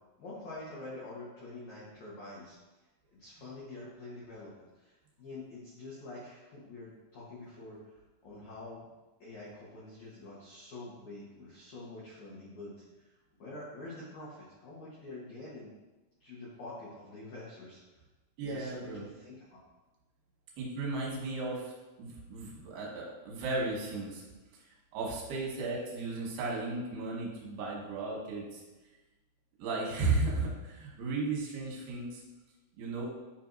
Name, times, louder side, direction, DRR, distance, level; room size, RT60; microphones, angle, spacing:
voice 1, 0.2-2.5 3.1-7.9 8.2-8.9 9.2-13.1 13.4-15.7 16.2-18.0 18.4-19.4, left 2 dB, 90° left, -8 dB, 1.6 m, -46 dB
voice 2, 18.4-19.1 20.6-21.7 22.0-24.2 24.9-28.6 29.6-32.2 32.8-33.1, right 3 dB, 65° right, -3 dB, 3.1 m, -35 dB
9.4 x 4.5 x 2.6 m, 1.1 s
omnidirectional pair, 5.5 m